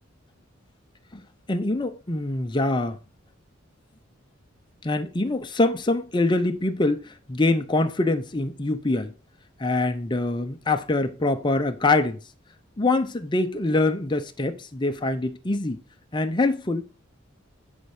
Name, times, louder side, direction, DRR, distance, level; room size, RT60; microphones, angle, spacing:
voice 1, 1.5-3.0 4.8-9.1 9.6-12.2 12.8-15.8 16.1-16.9, left 2 dB, 20° left, 0.6 m, -24 dB
9.9 x 4.4 x 5.4 m
head